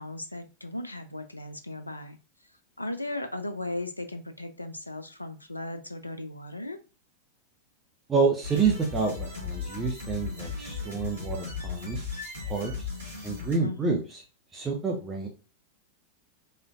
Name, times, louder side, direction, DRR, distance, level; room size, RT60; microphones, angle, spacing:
voice 1, 0.0-2.2 2.8-6.8 13.6-14.0, left 2 dB, 85° left, 0.4 m, -36 dB
voice 2, 8.1-12.0 12.5-12.9 13.2-14.2 14.5-15.3, right 5 dB, 20° right, 0.6 m, -28 dB
sound 1, 8.4-13.6, left 5 dB, 70° right, 1.4 m, -36 dB
4.3 x 2.5 x 2.4 m
figure-of-eight pair, 90°, 0 cm